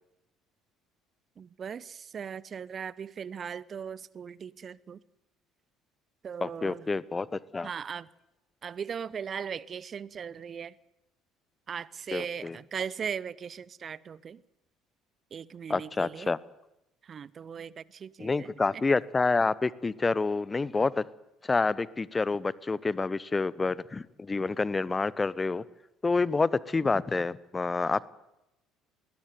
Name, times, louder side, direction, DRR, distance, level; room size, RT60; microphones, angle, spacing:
voice 1, 1.4-5.0 6.2-6.9 7.6-8.1 8.6-10.8 11.7-14.4 15.3-16.3 17.0-18.5, right 7 dB, 35° right, 22 dB, 0.8 m, -38 dB
voice 2, 6.4-7.7 12.1-12.6 15.7-16.4 18.2-21.0 21.4-25.6 26.0-28.1, left 3 dB, 20° left, 21 dB, 0.9 m, -28 dB
20.5 x 19.0 x 9.4 m, 0.89 s
figure-of-eight pair, 55°, 0 cm